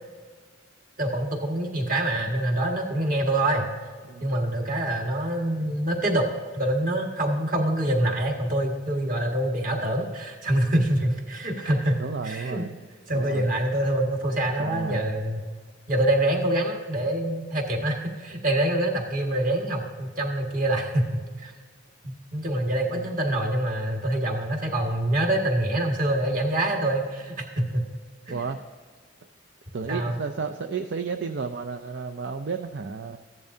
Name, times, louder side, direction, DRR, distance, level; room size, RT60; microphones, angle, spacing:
voice 1, 1.0-3.7 4.2-6.3 6.5-12.6 13.1-15.4 15.9-21.5 22.0-27.9 28.3-28.4 29.9-30.2, right 1 dB, 45° right, 1 dB, 1.8 m, -25 dB
voice 2, 9.7-10.0 12.0-12.8 13.1-13.6 14.6-15.1 22.9-23.1 28.3-28.6 29.7-33.2, right 5 dB, 60° right, 6 dB, 0.5 m, -32 dB
15.0 x 10.5 x 2.7 m, 1.5 s
head